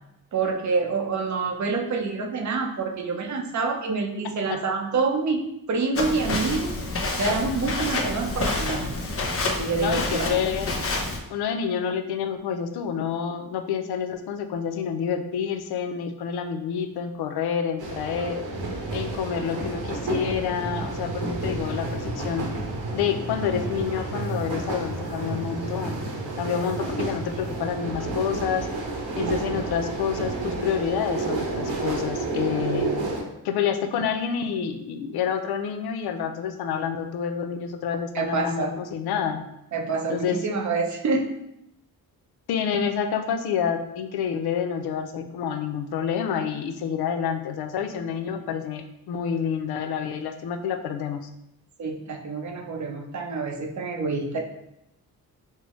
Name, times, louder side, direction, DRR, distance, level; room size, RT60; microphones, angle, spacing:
voice 1, 0.3-6.7 7.2-8.9 9.6-10.3 38.1-38.7 39.7-41.3 51.8-54.4, right 4 dB, 50° right, 3 dB, 0.7 m, -27 dB
Walk footsteps, 5.9-11.2, left 2 dB, 35° left, 0.7 m, -28 dB
voice 2, 9.8-10.7 11.3-18.4 18.9-22.5 22.9-26.0 26.4-28.7 29.2-32.9 33.4-39.5 40.1-40.4 42.5-51.3, left 7 dB, 80° left, 8 dB, 0.5 m, -28 dB
sound 1, 17.8-33.2, right 3 dB, 75° right, 1.1 m, -30 dB
5.5 x 2.0 x 3.0 m, 0.84 s
cardioid pair, 105°, 37 cm